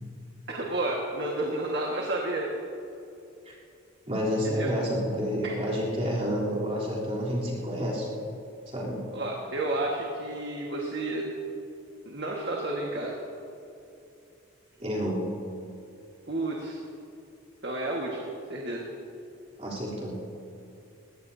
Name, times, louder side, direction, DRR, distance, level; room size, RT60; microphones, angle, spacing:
voice 1, 0.5-2.5 4.6-4.7 5.4-5.5 9.1-11.3 12.0-13.2 16.3-16.8 17.6-18.8, right 2 dB, 55° right, -2 dB, 1.7 m, -31 dB
voice 2, 4.1-8.1 8.7-9.0 14.8-15.2 19.6-20.2, equal, 35° right, -7 dB, 3.5 m, -29 dB
21.5 x 17.5 x 2.8 m, 2.7 s
head